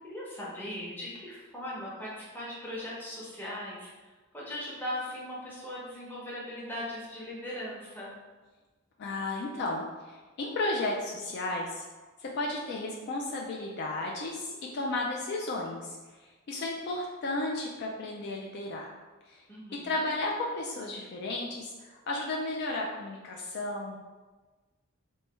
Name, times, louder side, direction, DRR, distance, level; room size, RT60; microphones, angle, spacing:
voice 1, 0.0-8.1 19.5-19.9, left 1 dB, 10° left, -7 dB, 0.7 m, -39 dB
voice 2, 9.0-11.8 12.2-18.9 19.3-19.4 19.7-24.0, left 2 dB, 50° left, -1 dB, 0.3 m, -34 dB
3.1 x 2.2 x 3.1 m, 1.3 s
head